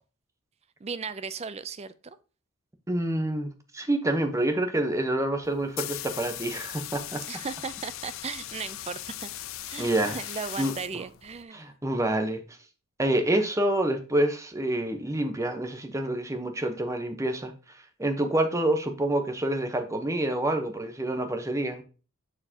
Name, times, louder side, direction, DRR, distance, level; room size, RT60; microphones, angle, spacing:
voice 1, 0.8-2.2 7.3-9.3 9.7-11.6, right 5 dB, 30° right, 0.4 m, -36 dB
voice 2, 2.9-7.2 9.8-10.2 10.6-10.7 11.5-12.4 13.0-17.5 18.0-21.8, right 1 dB, 15° right, 0.9 m, -27 dB
sound 1, 5.4-11.4, left 13 dB, 70° left, 0.5 m, -39 dB
6.7 x 6.7 x 2.8 m
head